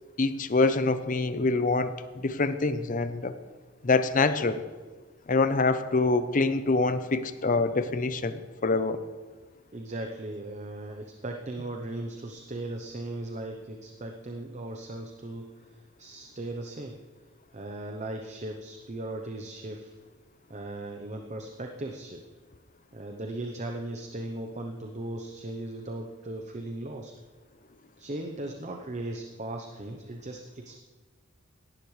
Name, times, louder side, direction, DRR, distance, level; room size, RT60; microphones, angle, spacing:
voice 1, 0.2-3.3 3.8-4.6 5.3-9.0, left 3 dB, 40° left, 11 dB, 0.7 m, -25 dB
voice 2, 9.7-16.9 17.5-19.9 20.5-22.2 22.9-27.1 28.0-30.8, right 2 dB, 35° right, 4 dB, 0.8 m, -38 dB
17.5 x 11.5 x 3.2 m, 1.4 s
head